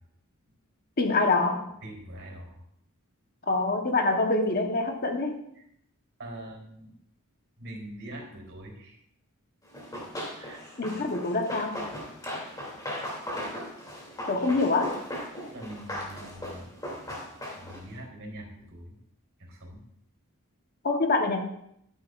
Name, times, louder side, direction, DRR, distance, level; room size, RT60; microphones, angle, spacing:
voice 1, 1.0-1.7 3.5-5.4 10.8-11.8 14.3-15.0 20.8-21.4, left 3 dB, 45° left, 4 dB, 1.1 m, -25 dB
voice 2, 1.8-2.6 5.6-5.7 6.2-6.9 7.6-9.0 9.9-10.0 10.4-10.7 11.0-11.1 14.4-14.6 15.5-16.8 17.5-19.0 19.4-19.8, right 1 dB, 60° right, 0 dB, 3.5 m, -43 dB
Run, 9.7-17.9, left 1 dB, 15° left, 2.7 m, -38 dB
14.0 x 9.8 x 2.5 m, 0.74 s
head